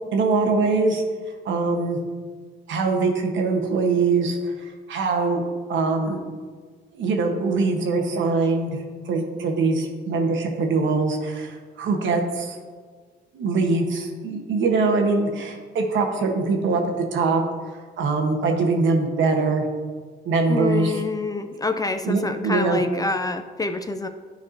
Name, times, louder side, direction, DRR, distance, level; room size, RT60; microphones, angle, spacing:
voice 1, 0.1-1.0 1.4-2.0 2.7-5.4 5.7-6.2 6.9-12.6 13.3-16.8 17.1-17.4 18.0-19.6 20.2-21.0 22.0-22.8, right 3 dB, 75° right, 3 dB, 1.1 m, -23 dB
voice 2, 20.5-24.1, left 3 dB, 20° left, 8 dB, 0.4 m, -27 dB
10.5 x 4.7 x 2.6 m, 1.6 s
cardioid pair, 90°, 20 cm